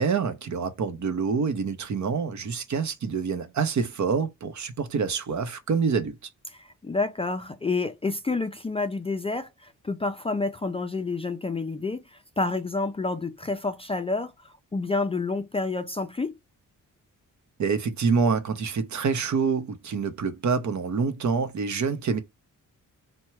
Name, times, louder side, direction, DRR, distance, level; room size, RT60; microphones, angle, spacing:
voice 1, 0.0-6.3 17.6-22.2, right 5 dB, 60° right, 0.9 m, -26 dB
voice 2, 6.5-16.3, left 3 dB, 20° left, 0.4 m, -29 dB
4.5 x 2.2 x 4.5 m
wide cardioid pair, 135°, 33 cm